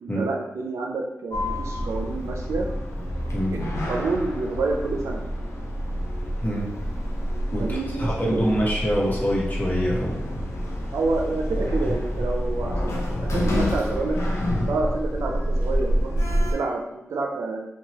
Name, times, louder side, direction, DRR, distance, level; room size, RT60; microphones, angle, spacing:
voice 1, 0.0-2.7 3.5-5.2 7.6-8.6 10.9-14.4 14.7-17.6, right 3 dB, 85° right, 2 dB, 0.4 m, -28 dB
Sliding door, 1.3-16.5, equal, 75° left, 0.5 m, -27 dB
voice 2, 7.5-10.4 11.8-11.9, equal, 40° left, -4 dB, 1.0 m, -25 dB
2.7 x 2.2 x 2.9 m, 0.87 s
cardioid pair, 40°, 5 cm